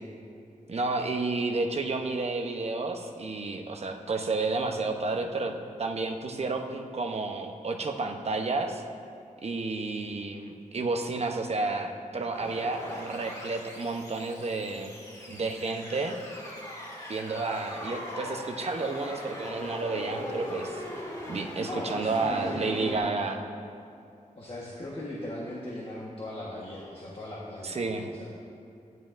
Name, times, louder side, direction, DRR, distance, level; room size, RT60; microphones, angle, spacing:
voice 1, 0.7-8.8 9.4-15.0 15.3-16.2 17.1-20.8 21.3-23.5 27.6-28.1, right 3 dB, 50° right, 4 dB, 0.8 m, -31 dB
sound 1, 12.3-23.0, equal, 25° left, 2.0 m, -40 dB
voice 2, 21.5-23.0 24.3-28.3, left 1 dB, 45° left, -5 dB, 1.4 m, -38 dB
15.0 x 11.0 x 2.6 m, 2.4 s
wide cardioid pair, 120°, 14 cm